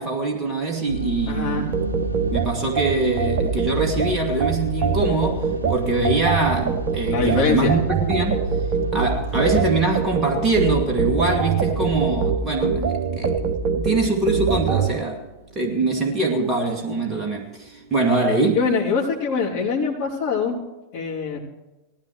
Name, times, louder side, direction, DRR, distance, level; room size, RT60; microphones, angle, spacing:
voice 1, 0.0-1.8 2.3-5.4 5.7-8.4 8.9-13.3 13.8-15.2 15.6-18.6, right 3 dB, 20° right, 2.4 m, -23 dB
sound 1, 0.8-19.2, right 2 dB, 80° right, 1.2 m, -33 dB
voice 2, 1.3-1.7 7.1-7.7 18.5-20.6 20.9-21.4, left 5 dB, 45° left, 3.5 m, -23 dB
sound 2, 1.7-14.9, right 6 dB, 45° right, 1.2 m, -24 dB
18.5 x 14.0 x 3.2 m
figure-of-eight pair, 90°, 0 cm